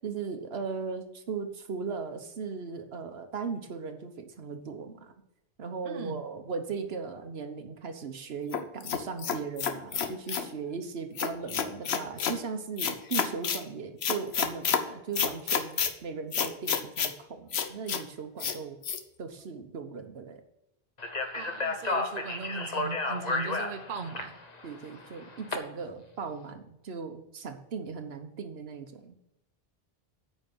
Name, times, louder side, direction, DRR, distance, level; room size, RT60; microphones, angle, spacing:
voice 1, 0.0-5.1 5.6-18.8 19.2-20.4 24.6-29.1, right 5 dB, 80° right, 7 dB, 1.2 m, -38 dB
voice 2, 5.8-6.2 21.3-24.3, right 5 dB, 55° right, 7 dB, 1.0 m, -38 dB
sound 1, 8.5-10.5 11.2-12.4 12.8-13.6 14.0-14.8 15.1-15.9 16.3-17.1 17.5-18.0 18.4-18.6 18.8-19.0, left 7 dB, 90° left, 1.1 m, -29 dB
Speech, 21.0-25.5, left 3 dB, 40° left, 1.2 m, -32 dB
9.0 x 5.3 x 7.7 m, 0.86 s
omnidirectional pair, 1.0 m